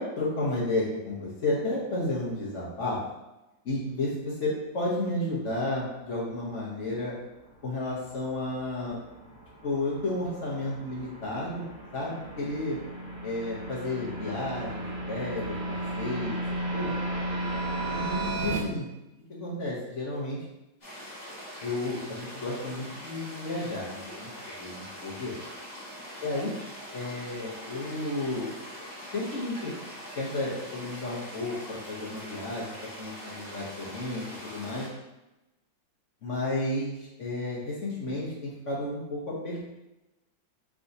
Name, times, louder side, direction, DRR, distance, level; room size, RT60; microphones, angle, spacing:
voice 1, 0.0-3.0 3.6-7.1 7.6-9.0 9.6-11.6 11.9-12.8 13.2-15.6 16.0-16.4 16.7-16.9 17.9-18.9 19.3-20.4 21.6-25.3 26.2-26.5 26.9-28.5 29.1-29.7 30.2-34.9 36.2-39.6, left 2 dB, 50° left, -6 dB, 1.1 m, -32 dB
sound 1, 7.3-18.6, right 1 dB, 55° right, 1.2 m, -35 dB
sound 2, 20.8-34.9, equal, 25° left, 1.2 m, -43 dB
4.8 x 3.5 x 2.7 m, 0.97 s
omnidirectional pair, 2.1 m